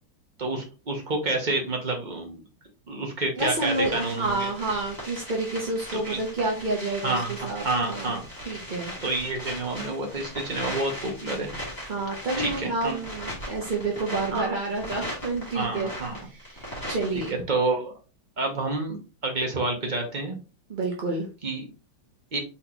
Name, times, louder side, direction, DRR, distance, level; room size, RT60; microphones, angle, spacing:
voice 1, 0.4-2.4 2.9-4.5 5.9-6.2 7.0-8.2 9.0-11.5 12.4-13.0 14.3-14.5 15.5-16.2 17.1-17.9 18.4-20.3 21.4-21.7 22.3-22.4, right 2 dB, 30° right, 2 dB, 1.0 m, -29 dB
sound 1, 3.4-17.3, equal, 10° left, 2.2 m, -38 dB
voice 2, 3.4-8.2 8.5-8.9 11.8-15.9 16.2-17.4 20.7-21.3, right 2 dB, 45° right, -1 dB, 0.6 m, -29 dB
4.2 x 4.1 x 2.9 m, 0.32 s
omnidirectional pair, 2.1 m